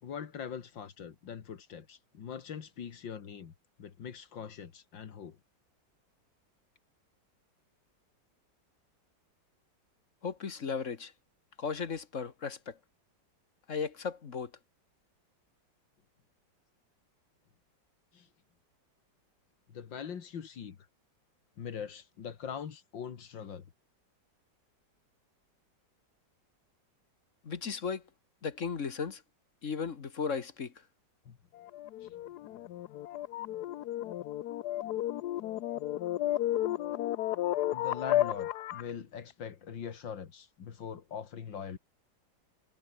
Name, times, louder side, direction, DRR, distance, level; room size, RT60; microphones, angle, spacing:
voice 1, 0.0-3.5 3.8-5.4 18.1-18.3 19.7-20.8 21.6-23.6 31.3-31.4 32.0-32.3 37.7-41.8, left 7 dB, 85° left, 2.5 m, -42 dB
voice 2, 10.2-11.1 11.6-12.7 13.7-14.5 27.4-28.0 28.4-29.2 29.6-30.7, left 5 dB, 45° left, 1.6 m, -35 dB
sound 1, 31.6-38.9, left 13 dB, 65° left, 1.2 m, -33 dB
omnidirectional pair, 2.0 m